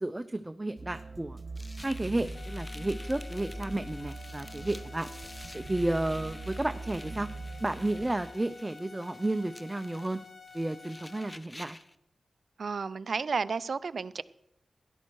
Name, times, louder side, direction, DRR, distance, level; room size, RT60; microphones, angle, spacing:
voice 1, 0.0-1.4 1.8-5.1 5.5-7.3 7.6-10.2 10.5-11.8, right 2 dB, 20° right, 0.5 m, -32 dB
sound 1, 0.8-8.2, right 2 dB, 40° right, 1.5 m, -41 dB
sound 2, 1.5-11.9, left 1 dB, 20° left, 0.6 m, -51 dB
sound 3, 2.3-11.4, left 5 dB, 60° left, 2.0 m, -51 dB
voice 2, 12.6-14.2, right 5 dB, 70° right, 0.4 m, -32 dB
13.0 x 11.0 x 4.7 m
cardioid pair, 50°, 0 cm